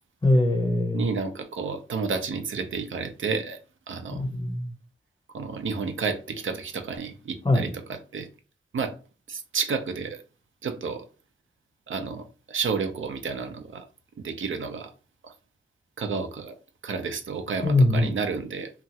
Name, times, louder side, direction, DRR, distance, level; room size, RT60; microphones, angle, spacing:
voice 1, 0.2-1.1 4.1-4.7 7.4-7.7 17.6-18.1, left 2 dB, 25° left, 0.6 m, -22 dB
voice 2, 0.9-3.6 3.9-4.2 5.3-8.3 8.7-8.9 9.3-10.2 10.6-11.0 11.9-13.8 14.2-14.9 15.2-15.3 16.0-16.5 16.8-18.7, right 5 dB, 70° right, 0.6 m, -31 dB
2.9 x 2.3 x 2.8 m
cardioid pair, 55°, 21 cm